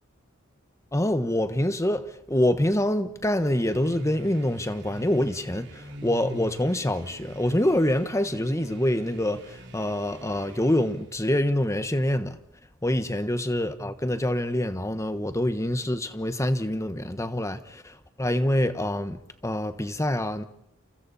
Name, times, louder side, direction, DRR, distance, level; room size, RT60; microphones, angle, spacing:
voice 1, 0.9-12.4 12.8-20.4, left 1 dB, 15° left, 1.3 m, -26 dB
sound 1, 3.4-11.2, equal, 60° right, 3.3 m, -42 dB
29.5 x 29.5 x 4.3 m
head